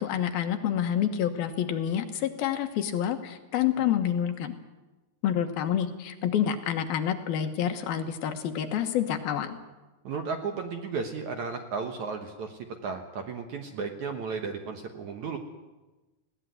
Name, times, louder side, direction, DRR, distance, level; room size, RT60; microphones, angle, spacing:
voice 1, 0.0-4.5 5.2-9.6, left 9 dB, 70° left, 7 dB, 2.9 m, -28 dB
voice 2, 10.0-15.4, right 5 dB, 65° right, 5 dB, 2.0 m, -34 dB
20.0 x 17.0 x 9.4 m, 1.1 s
omnidirectional pair, 4.7 m